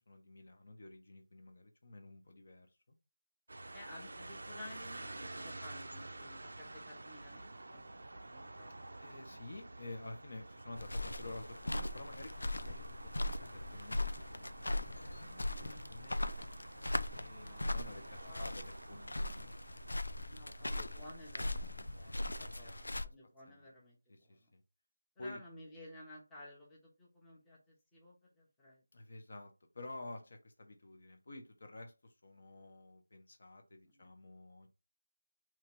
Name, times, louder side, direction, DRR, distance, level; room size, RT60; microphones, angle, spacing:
voice 1, 0.0-2.7 9.0-16.2 17.1-19.5 22.0-22.3 22.6-22.9 23.5-23.7 24.1-24.6 25.2-25.4 28.9-34.7, left 2 dB, 45° left, 5 dB, 0.9 m, -51 dB
sound 1, 3.5-22.9, right 2 dB, 65° right, 0.4 m, -51 dB
voice 2, 3.7-9.0 15.3-16.1 17.3-18.5 20.3-24.5 25.2-28.8 33.9-34.1, left 1 dB, 5° left, -6 dB, 0.7 m, -55 dB
sound 2, 10.8-23.1, left 1 dB, 85° left, 0.4 m, -39 dB
3.0 x 2.8 x 4.5 m, 0.29 s
figure-of-eight pair, 170°, 0 cm